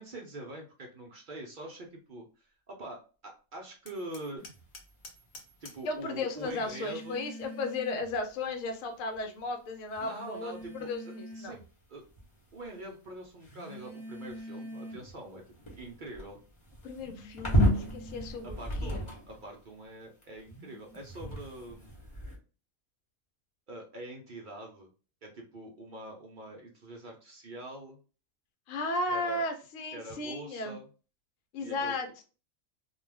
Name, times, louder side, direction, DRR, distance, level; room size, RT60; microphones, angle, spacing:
voice 1, 0.0-4.4 5.6-7.2 10.0-11.6 11.9-12.0 12.5-15.4 15.8-16.4 18.4-21.9 23.7-24.9 25.2-28.0 29.1-29.4 29.9-30.9 31.6-32.0, right 1 dB, 60° right, 0 dB, 0.5 m, -44 dB
Hammer, 3.9-5.9, left 2 dB, 55° left, 0.6 m, -51 dB
sound 1, 4.4-4.6 6.4-8.2 9.2-9.3 9.9-11.7 12.2-12.7 13.4-19.5 20.2-22.4, equal, 25° left, 0.9 m, -35 dB
voice 2, 5.8-11.5 16.8-19.0 28.7-30.8 31.5-32.2, left 2 dB, 70° left, 5 dB, 0.9 m, -35 dB
2.3 x 2.3 x 3.2 m, 0.35 s
omnidirectional pair, 1.5 m